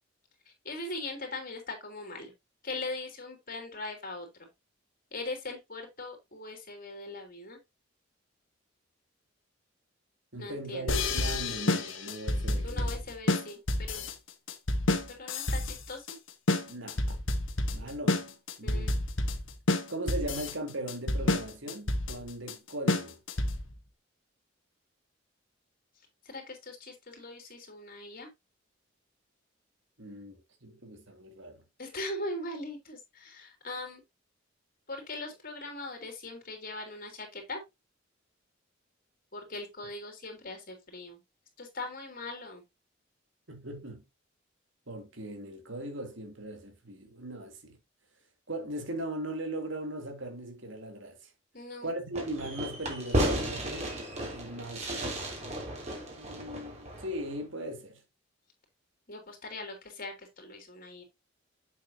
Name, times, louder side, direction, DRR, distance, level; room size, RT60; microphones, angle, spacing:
voice 1, 0.5-2.3 2.6-4.5 5.1-7.6 10.4-10.9 12.6-14.1 15.1-16.2 18.6-19.0 26.2-28.3 31.8-34.0 34.9-37.6 39.3-41.2 41.6-42.6 51.5-51.9 59.1-61.0, left 2 dB, 45° left, 3.4 m, -40 dB
voice 2, 10.3-13.0 16.7-17.2 17.7-18.2 18.6-19.0 19.9-23.2 30.0-31.6 43.5-44.0 44.9-47.8 48.5-51.3 51.8-53.9 54.3-55.2 56.2-58.0, right 1 dB, 65° right, 2.7 m, -39 dB
sound 1, 10.9-23.8, left 2 dB, 75° left, 1.5 m, -29 dB
Fireworks, 52.1-57.4, right 1 dB, 35° right, 3.3 m, -34 dB
8.0 x 7.5 x 2.7 m
head